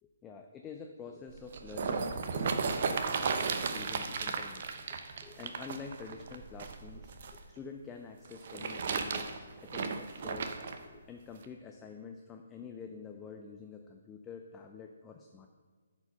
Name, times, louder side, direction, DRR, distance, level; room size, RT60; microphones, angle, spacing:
voice 1, 0.2-4.6 5.2-7.1 7.5-10.5 10.8-15.5, left 5 dB, 15° left, 3 dB, 0.4 m, -47 dB
sound 1, 1.3-7.4 8.2-10.8 11.4-11.5, right 5 dB, 50° right, 0.7 m, -35 dB
8.2 x 5.0 x 5.4 m, 1.5 s
hypercardioid pair, 160°, 0 cm